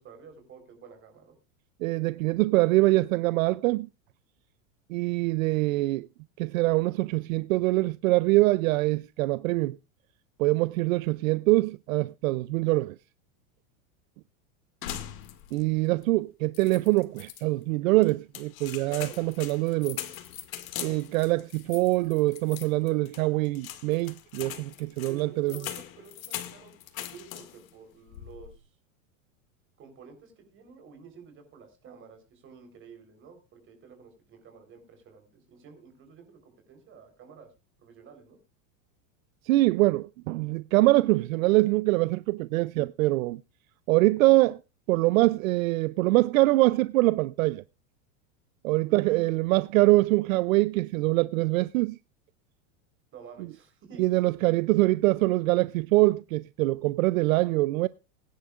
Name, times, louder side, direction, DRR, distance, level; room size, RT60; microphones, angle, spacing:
voice 1, 0.0-1.3 18.8-19.2 20.8-21.0 25.1-26.7 27.1-28.7 29.8-37.5 37.8-38.4 48.9-49.3 53.1-54.2, right 5 dB, 30° right, 3.8 m, -50 dB
voice 2, 1.8-3.9 4.9-6.1 6.4-9.8 10.4-13.0 15.5-20.0 20.8-25.6 39.4-43.4 43.9-44.6 44.9-47.6 48.6-52.0 54.0-57.9, right 20 dB, 70° right, 0.5 m, -24 dB
sound 1, 14.8-15.7 16.0-16.1 16.5-17.4 18.0-27.7 28.1-28.6, left 12 dB, 70° left, 2.1 m, -41 dB
20.5 x 10.5 x 2.4 m
supercardioid pair, 145°, 42 cm